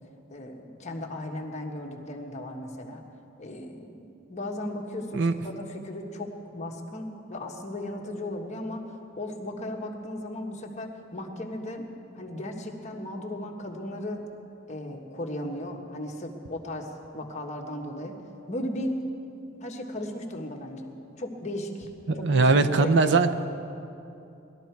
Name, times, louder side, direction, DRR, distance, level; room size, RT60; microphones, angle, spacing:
voice 1, 0.3-3.0 3.4-4.0 4.3-8.9 9.2-11.9 12.1-14.2 14.7-18.2 18.5-18.9 19.6-20.9 21.2-21.9 22.1-23.2, left 1 dB, 35° left, 1 dB, 1.3 m, -36 dB
voice 2, 22.1-23.3, right 3 dB, 60° right, 9 dB, 0.6 m, -21 dB
20.0 x 12.0 x 4.6 m, 2.7 s
head